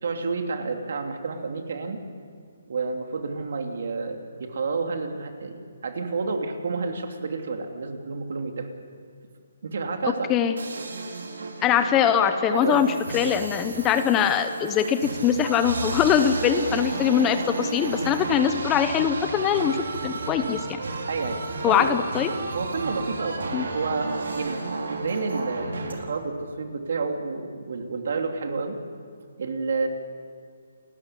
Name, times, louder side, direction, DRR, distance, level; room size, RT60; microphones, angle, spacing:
voice 1, 0.0-2.0 2.7-8.7 9.6-10.3 12.5-13.1 21.1-22.0 22.5-24.6 24.9-28.8 29.4-29.9, right 4 dB, 55° right, 4 dB, 2.8 m, -30 dB
sound 1, 10.6-25.9, right 3 dB, 80° right, 4.3 m, -33 dB
voice 2, 11.6-20.7 21.6-22.3 23.5-23.6, left 8 dB, 15° left, 9 dB, 0.7 m, -22 dB
29.0 x 14.5 x 9.9 m, 2.2 s
hypercardioid pair, 175°, 0 cm